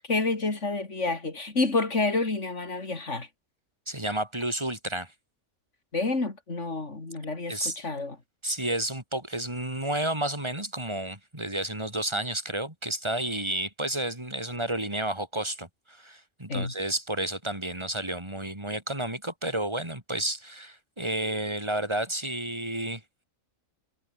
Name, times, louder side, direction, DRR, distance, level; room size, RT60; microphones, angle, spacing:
voice 1, 0.1-3.3 5.9-8.2 16.5-16.7, left 3 dB, 60° left, 4.0 m, -29 dB
voice 2, 3.9-5.1 7.5-7.8 8.4-23.2, right 1 dB, 20° right, 4.5 m, -31 dB
omnidirectional pair, 1.4 m